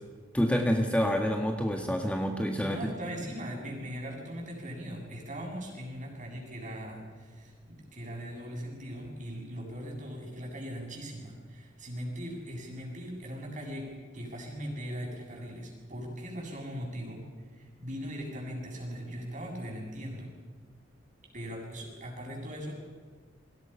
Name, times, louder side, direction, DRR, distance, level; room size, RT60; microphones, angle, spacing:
voice 1, 0.3-2.8, equal, 5° left, 2 dB, 1.7 m, -27 dB
voice 2, 2.6-13.9 14.1-20.3 21.3-22.7, equal, 40° right, 0 dB, 7.6 m, -40 dB
29.0 x 23.5 x 5.8 m, 1.5 s
head